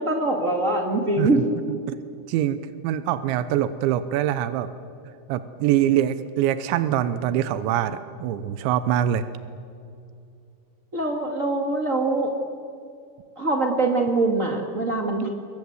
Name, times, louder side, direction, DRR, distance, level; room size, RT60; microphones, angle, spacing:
voice 1, 0.0-1.4 10.9-12.3 13.4-15.3, right 2 dB, 50° right, 2 dB, 0.8 m, -23 dB
voice 2, 2.3-4.7 5.3-9.2, right 11 dB, 90° right, 12 dB, 3.2 m, -24 dB
28.0 x 23.0 x 8.0 m, 2.5 s
omnidirectional pair, 5.2 m